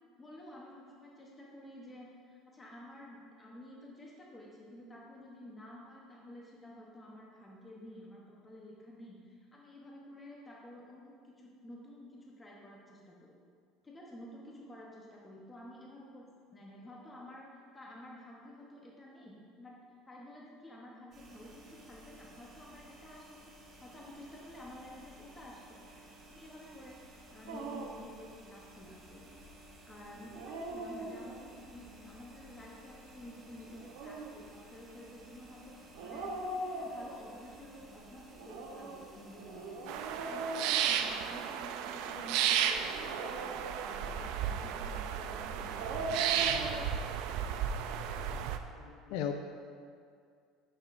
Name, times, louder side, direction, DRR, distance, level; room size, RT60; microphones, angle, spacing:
voice 1, 0.2-13.4 13.8-19.8 20.1-26.0 26.3-27.0 27.3-29.3 29.8-42.8 43.4-46.9, left 1 dB, 15° left, -3 dB, 0.9 m, -51 dB
sound 1, 21.1-40.3, right 1 dB, 35° right, 1.2 m, -56 dB
Dog, 27.5-28.1 30.2-31.6 33.7-34.4 35.9-37.4 38.3-41.5 42.8-44.2 45.5-46.9, right 2 dB, 90° right, 0.9 m, -41 dB
sound 2, 39.9-48.6, right 9 dB, 65° right, 0.4 m, -33 dB
voice 2, 48.7-49.3, left 9 dB, 75° left, 5 dB, 0.4 m, -36 dB
10.0 x 6.4 x 2.5 m, 2.2 s
cardioid pair, 150°, 0 cm